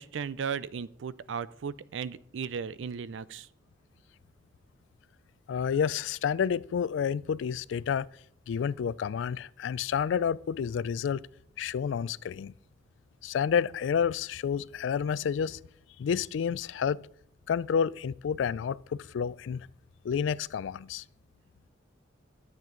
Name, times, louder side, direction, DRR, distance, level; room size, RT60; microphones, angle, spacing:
voice 1, 0.0-3.5, right 6 dB, 80° right, 0.4 m, -36 dB
voice 2, 5.5-8.1 8.5-11.2 11.6-12.5 13.2-15.6 16.0-17.1 17.5-19.7 20.0-21.0, left 7 dB, 80° left, 0.3 m, -29 dB
12.0 x 7.4 x 3.8 m
head